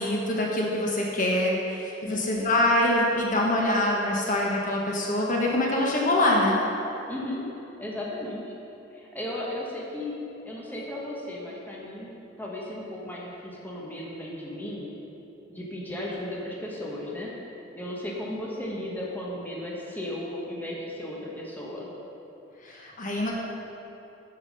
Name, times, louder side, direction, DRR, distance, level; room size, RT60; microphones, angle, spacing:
voice 1, 0.0-6.6 22.6-23.3, left 1 dB, 45° left, -2 dB, 1.2 m, -24 dB
voice 2, 2.0-2.4 7.1-7.5 7.8-8.5 8.9-10.1 10.4-14.9 15.5-17.3 17.7-21.9, left 1 dB, 10° left, -4 dB, 1.3 m, -35 dB
10.0 x 7.2 x 5.4 m, 3.0 s
head